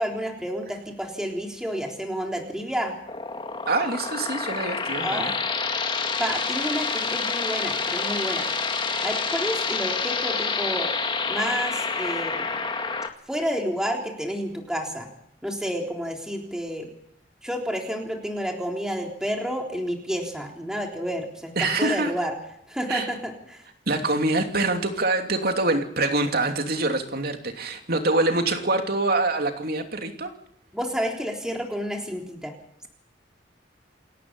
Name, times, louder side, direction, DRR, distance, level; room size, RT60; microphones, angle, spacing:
voice 1, 0.0-2.9 5.0-5.3 6.2-8.5 9.0-10.9 11.3-12.6 13.3-15.1 15.4-16.9 17.4-21.5 21.8-22.4 22.7-23.6 30.7-32.5, equal, 5° right, 1 dB, 3.7 m, -30 dB
sound 1, 3.1-13.1, left 4 dB, 30° left, 2.1 m, -28 dB
voice 2, 3.7-5.3 21.6-22.1 22.9-23.1 23.9-30.3, right 2 dB, 60° right, 5 dB, 3.0 m, -25 dB
28.5 x 14.0 x 10.0 m, 0.71 s
head